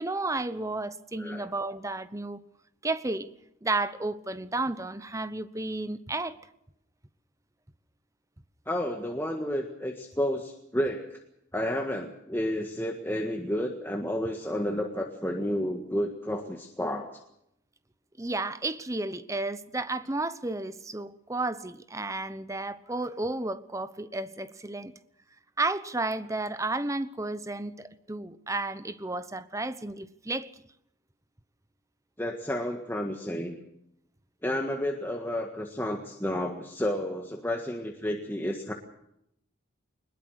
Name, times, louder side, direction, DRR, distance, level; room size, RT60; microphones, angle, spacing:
voice 1, 0.0-2.4 2.8-3.3 3.6-6.4 18.2-24.9 25.6-30.5 36.3-36.5, right 2 dB, 15° right, 0.9 m, -32 dB
voice 2, 8.7-11.2 11.5-17.1 32.2-33.6 34.4-38.7, left 1 dB, 10° left, 1.6 m, -31 dB
22.5 x 21.0 x 6.5 m
head